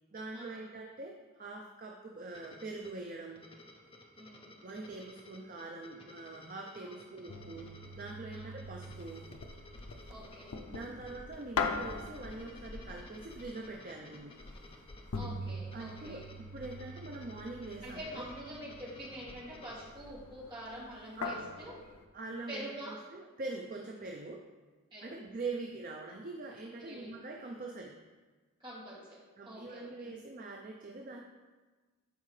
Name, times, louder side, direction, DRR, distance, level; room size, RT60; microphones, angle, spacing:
voice 1, 0.1-3.4 4.6-9.2 10.1-10.3 10.7-14.4 15.7-18.3 21.2-21.5 22.1-24.4 25.0-27.9 29.4-31.2, right 3 dB, 40° right, 1 dB, 0.5 m, -43 dB
sound 1, 2.3-19.9, left 2 dB, 25° left, 0.7 m, -56 dB
voice 2, 4.2-4.5 6.8-7.2 8.3-8.6 10.1-10.5 15.1-16.2 17.8-21.7 22.5-23.0 24.9-25.2 26.8-27.1 28.6-29.2 29.4-29.9, equal, 20° right, -8 dB, 2.6 m, -46 dB
sound 2, 7.3-22.0, left 3 dB, 85° left, 0.6 m, -43 dB
11.0 x 4.7 x 3.2 m, 1.3 s
head